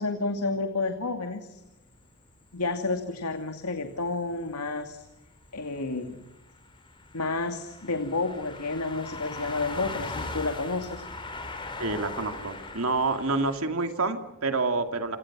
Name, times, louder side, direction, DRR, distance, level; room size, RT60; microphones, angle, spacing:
voice 1, 0.0-1.6 2.5-5.1 5.5-6.2 7.1-11.0, left 3 dB, 90° left, 6 dB, 2.5 m, -30 dB
sound 1, 1.6-1.7 3.2-3.3 3.9-4.1 4.4-4.5 4.8-13.6, left 2 dB, 20° left, 4.2 m, -40 dB
voice 2, 11.8-15.2, right 3 dB, 70° right, 6 dB, 2.6 m, -28 dB
29.0 x 28.0 x 6.2 m, 0.97 s
head